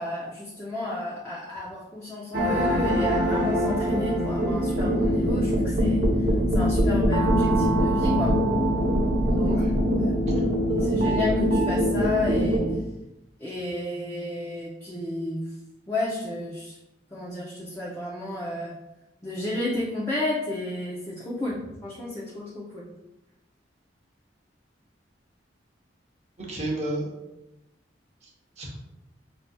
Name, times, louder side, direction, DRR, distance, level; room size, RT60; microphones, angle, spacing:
voice 1, 0.0-6.1 6.5-8.3 9.3-9.6 10.0-10.1 10.8-12.6 13.4-15.5 15.9-16.8 17.1-18.7 19.2-22.9, left 2 dB, 15° left, -7 dB, 0.5 m, -32 dB
sound 1, 2.3-12.7, equal, 70° right, 0.8 m, -23 dB
voice 2, 9.4-9.8 10.3-10.4 26.4-27.1 28.2-28.3 28.6-28.8, right 1 dB, 35° right, -2 dB, 0.9 m, -32 dB
5.6 x 2.7 x 2.2 m, 0.94 s
head